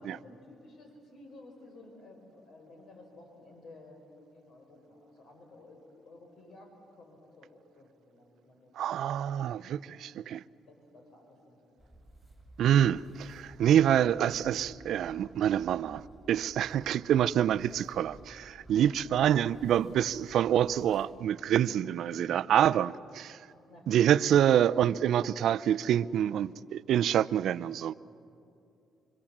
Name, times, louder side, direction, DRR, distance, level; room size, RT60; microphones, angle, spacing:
voice 1, 0.0-4.0 4.3-9.4 10.7-11.8 18.8-19.0 22.1-22.3 23.7-23.9, left 2 dB, 65° left, 5.6 m, -54 dB
voice 2, 8.8-10.4 12.6-23.4 23.9-27.9, right 10 dB, 75° right, 0.5 m, -26 dB
sound 1, 11.8-21.1, right 1 dB, 20° left, 7.1 m, -55 dB
26.0 x 25.5 x 7.4 m
cardioid pair, 90°, 0 cm